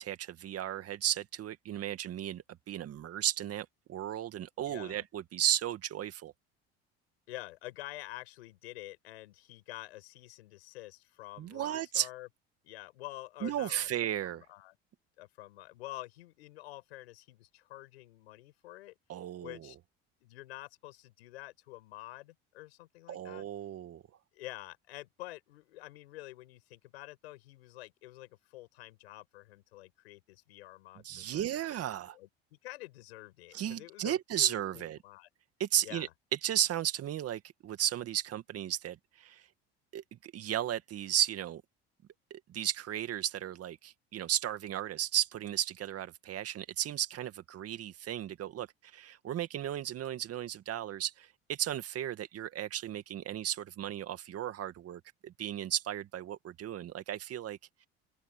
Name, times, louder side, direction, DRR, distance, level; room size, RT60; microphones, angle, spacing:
voice 1, 0.0-6.3 11.4-12.1 13.4-14.4 19.1-19.6 23.1-24.0 31.0-32.2 33.5-35.0 35.6-36.1 36.4-39.4 39.9-41.6 42.3-48.7 48.9-57.6, right 11 dB, 50° right, 2.2 m, -34 dB
voice 2, 4.7-5.0 7.3-12.3 12.6-13.9 14.2-14.8 15.2-18.9 19.4-19.8 20.2-23.5 24.3-35.3 35.8-36.1, left 17 dB, 90° left, 5.9 m, -48 dB
open air
supercardioid pair, 80°, 31 cm